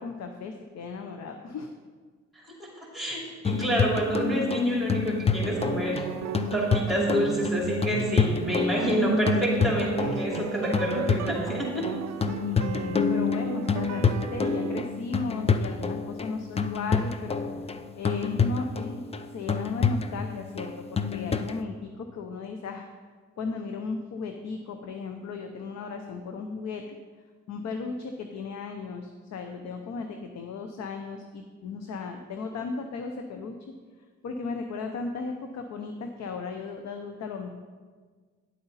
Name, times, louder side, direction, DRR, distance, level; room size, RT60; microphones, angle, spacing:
voice 1, 0.0-1.7 12.3-17.4 18.0-19.0 19.3-22.9 23.4-26.8 27.5-33.5 34.2-37.5, left 4 dB, 60° left, 5 dB, 0.8 m, -35 dB
voice 2, 2.6-6.0 6.5-11.8, equal, ahead, -3 dB, 2.9 m, -27 dB
sound 1, 3.4-21.6, left 5 dB, 20° left, 0.4 m, -28 dB
sound 2, 5.4-14.8, right 9 dB, 65° right, 0.4 m, -36 dB
10.0 x 7.9 x 4.1 m, 1.5 s
cardioid pair, 90°, 30 cm